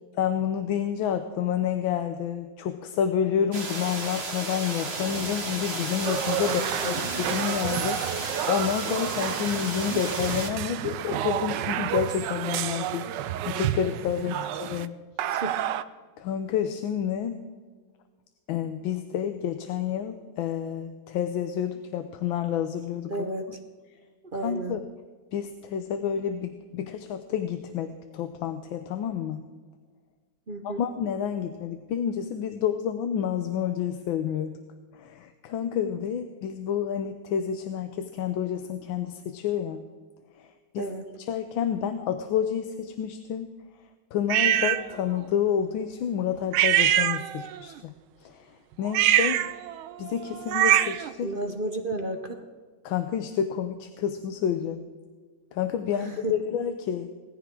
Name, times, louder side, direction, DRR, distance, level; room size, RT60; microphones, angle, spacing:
voice 1, 0.2-13.1 13.5-14.9 16.2-17.4 18.5-23.1 24.4-24.8 25.3-29.4 30.6-34.6 35.0-39.8 40.7-40.8 41.3-43.5 44.1-47.9 48.2-48.5 48.8-49.7 50.0-51.3 52.8-54.9 55.5-57.1, left 9 dB, 80° left, 8 dB, 1.5 m, -29 dB
sound 1, 3.5-10.5, right 3 dB, 30° right, 1.8 m, -33 dB
sound 2, 6.0-14.9 15.2-15.8, right 11 dB, 70° right, 1.1 m, -30 dB
voice 2, 6.4-7.0 14.2-14.4 15.3-15.7 23.1-23.6 24.3-24.9 30.5-30.8 40.8-41.2 51.2-52.4 55.9-56.4, right 2 dB, 50° right, 5 dB, 0.6 m, -33 dB
sound 3, 44.3-44.8 46.5-47.6 48.9-51.1, right 12 dB, 85° right, 1.5 m, -23 dB
19.0 x 14.5 x 3.7 m, 1.5 s
omnidirectional pair, 2.2 m